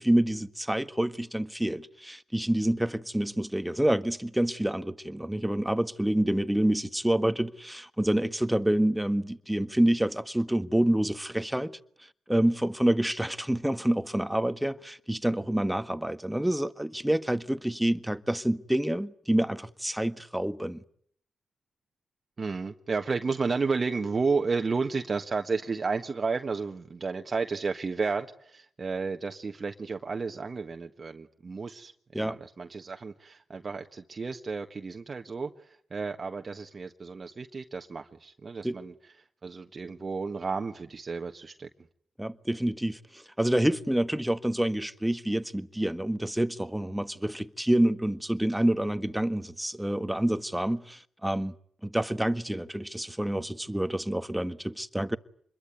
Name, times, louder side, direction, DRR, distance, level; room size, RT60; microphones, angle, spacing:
voice 1, 0.0-11.8 12.3-20.8 32.1-32.4 38.6-38.8 42.2-51.5 51.8-55.2, right 1 dB, 5° right, 1.6 m, -27 dB
voice 2, 22.4-38.9 39.4-41.7, right 4 dB, 50° right, 1.5 m, -32 dB
26.5 x 22.0 x 9.4 m
supercardioid pair, 45°, 0 cm